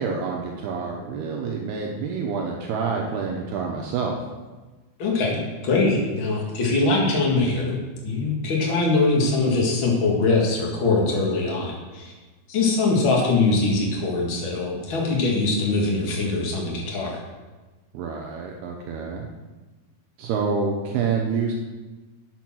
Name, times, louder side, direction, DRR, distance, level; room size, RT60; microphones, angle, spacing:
voice 1, 0.0-4.2 17.9-19.3 20.2-21.5, right 5 dB, 75° right, 0 dB, 2.6 m, -27 dB
voice 2, 5.0-7.8 8.0-12.1 12.5-17.2, left 3 dB, 45° left, -2 dB, 1.6 m, -22 dB
8.9 x 6.6 x 6.2 m, 1.2 s
omnidirectional pair, 5.1 m